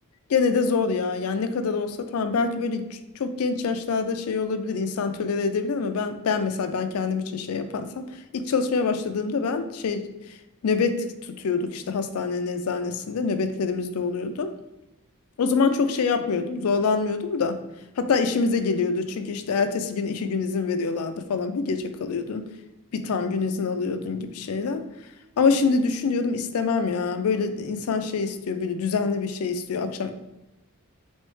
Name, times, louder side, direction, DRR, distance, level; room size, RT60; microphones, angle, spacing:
voice 1, 0.3-10.1 10.6-14.5 15.4-17.6 18.0-22.4 22.9-24.8 25.4-30.1, left 4 dB, 85° left, 9 dB, 0.4 m, -25 dB
3.8 x 3.1 x 3.1 m, 0.96 s
head